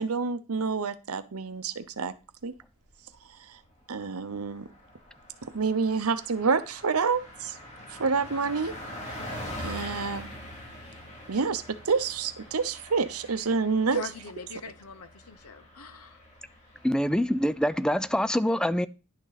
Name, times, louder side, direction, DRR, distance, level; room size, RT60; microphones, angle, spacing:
voice 1, 0.0-2.1 2.4-2.5 3.5-3.6 3.9-4.7 5.4-7.6 7.9-8.7 9.6-10.3 11.3-14.0, right 5 dB, 80° right, 0.8 m, -28 dB
Car passing by, 2.6-3.3 3.6-3.8 4.0-18.3, left 1 dB, 30° left, 2.5 m, -44 dB
voice 2, 13.9-16.2, left 4 dB, 85° left, 0.9 m, -42 dB
voice 3, 16.8-18.9, equal, 5° left, 0.3 m, -25 dB
10.5 x 6.4 x 4.1 m
head